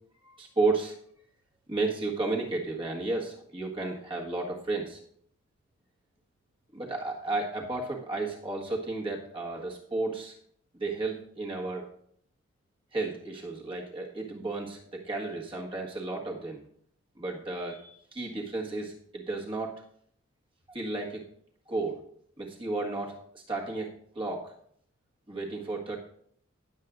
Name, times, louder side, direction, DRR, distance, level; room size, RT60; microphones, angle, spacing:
voice 1, 0.2-0.9 1.7-5.0 6.7-10.3 10.7-11.9 12.9-16.6 17.2-19.7 20.7-21.2 21.7-22.0 22.4-24.5 25.3-26.0, right 3 dB, 25° right, -2 dB, 1.6 m, -33 dB
19.0 x 7.5 x 2.5 m, 0.65 s
head